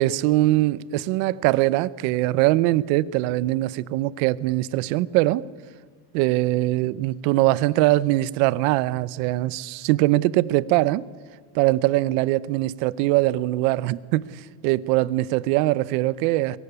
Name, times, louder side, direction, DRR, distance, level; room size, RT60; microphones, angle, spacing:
voice 1, 0.0-5.5 6.1-11.1 11.5-16.6, right 17 dB, 85° right, 0.9 m, -22 dB
22.5 x 15.5 x 9.8 m
cardioid pair, 125°, 48 cm